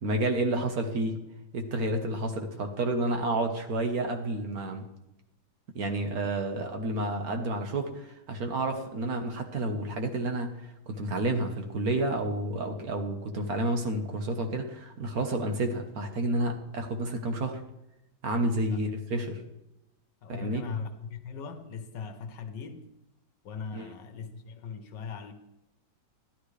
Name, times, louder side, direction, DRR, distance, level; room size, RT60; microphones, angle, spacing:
voice 1, 0.0-1.2 1.5-4.8 5.7-10.6 10.9-17.6 18.2-19.4 20.3-20.6 23.7-23.9, right 1 dB, 50° right, 1.5 m, -30 dB
voice 2, 20.2-22.8 23.4-25.3, left 5 dB, 65° left, 1.6 m, -39 dB
13.0 x 12.0 x 3.3 m
omnidirectional pair, 2.2 m